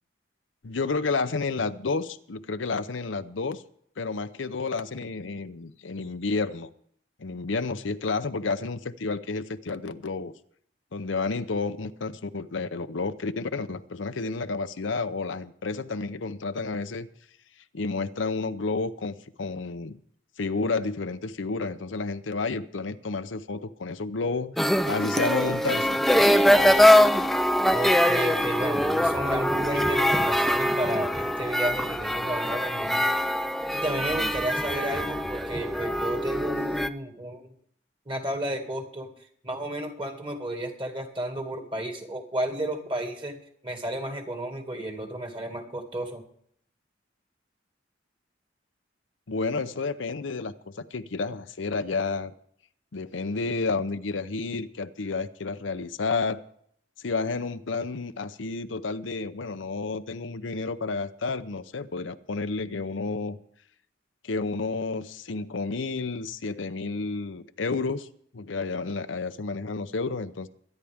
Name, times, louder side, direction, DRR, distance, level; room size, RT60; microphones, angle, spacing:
voice 1, 0.6-3.6 4.0-6.7 7.2-10.3 10.9-17.1 17.7-20.0 20.4-26.0 49.3-52.3 52.9-56.4 57.0-63.4 64.2-68.1 68.3-70.5, left 4 dB, 85° left, 0.7 m, -31 dB
sound 1, 24.6-36.9, equal, ahead, 0.4 m, -23 dB
voice 2, 27.7-33.1 33.7-37.4 38.1-39.1 39.4-46.2, right 1 dB, 25° right, 2.2 m, -32 dB
23.5 x 10.0 x 3.6 m
head